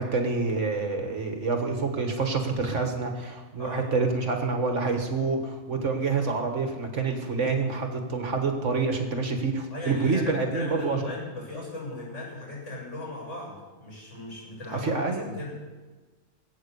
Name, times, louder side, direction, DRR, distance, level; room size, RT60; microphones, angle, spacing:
voice 1, 0.0-11.1 14.7-15.2, right 4 dB, 60° right, 4 dB, 1.8 m, -27 dB
voice 2, 9.7-15.5, left 2 dB, 60° left, -4 dB, 7.5 m, -37 dB
20.0 x 8.8 x 6.9 m, 1.3 s
omnidirectional pair, 1.4 m